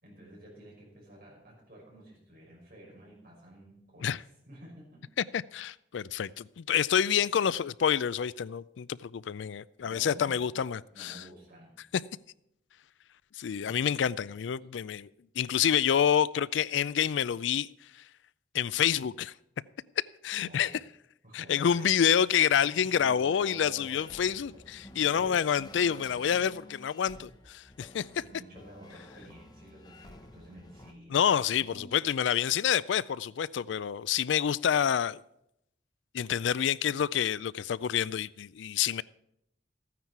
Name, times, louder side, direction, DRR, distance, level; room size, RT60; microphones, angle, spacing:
voice 1, 0.0-4.1 4.5-5.1 9.8-10.5 10.9-11.8 20.4-20.8 21.2-22.1 22.5-24.1 24.5-24.6 25.1-25.4 28.2-31.9, equal, 50° right, 5.6 m, -50 dB
voice 2, 5.3-11.2 13.3-15.1 15.4-17.7 17.9-18.0 18.5-19.3 20.2-20.7 21.3-28.1 31.1-35.2 36.1-39.0, left 8 dB, 85° left, 0.4 m, -28 dB
sound 1, 23.9-30.9, left 1 dB, 20° left, 0.9 m, -52 dB
14.5 x 9.6 x 4.7 m
head